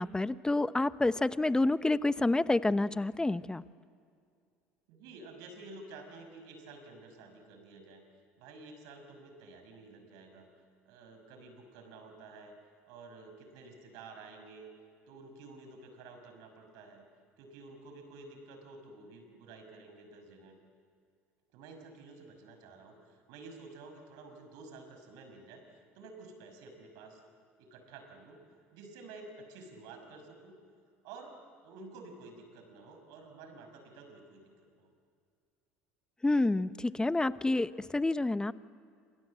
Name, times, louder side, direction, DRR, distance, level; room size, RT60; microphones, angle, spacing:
voice 1, 0.0-3.6 36.2-38.5, left 2 dB, 10° left, 15 dB, 0.9 m, -28 dB
voice 2, 4.9-8.0 8.4-10.5 10.9-12.6 12.9-14.7 15.1-17.0 17.4-20.6 21.5-27.2 27.6-28.4 28.7-30.6 31.0-34.4 34.7-34.9, right 3 dB, 65° right, 6 dB, 5.8 m, -51 dB
27.5 x 27.0 x 7.7 m, 2.3 s
hypercardioid pair, 70°, 7 cm